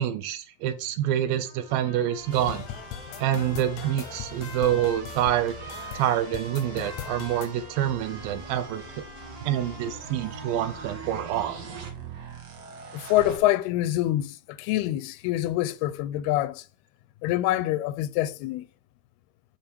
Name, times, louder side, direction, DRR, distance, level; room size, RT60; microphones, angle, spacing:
voice 1, 0.0-2.7 3.2-9.0 9.4-11.6, right 11 dB, 80° right, 2.3 m, -27 dB
Trumpet, 1.4-11.1, equal, 10° right, 1.0 m, -45 dB
sound 1, 2.2-13.4, right 4 dB, 55° right, 2.2 m, -43 dB
sound 2, 2.3-7.5, left 10 dB, 70° left, 1.9 m, -40 dB
voice 2, 12.9-16.6 17.2-18.7, left 14 dB, 90° left, 2.6 m, -26 dB
8.8 x 5.2 x 4.5 m
omnidirectional pair, 4.5 m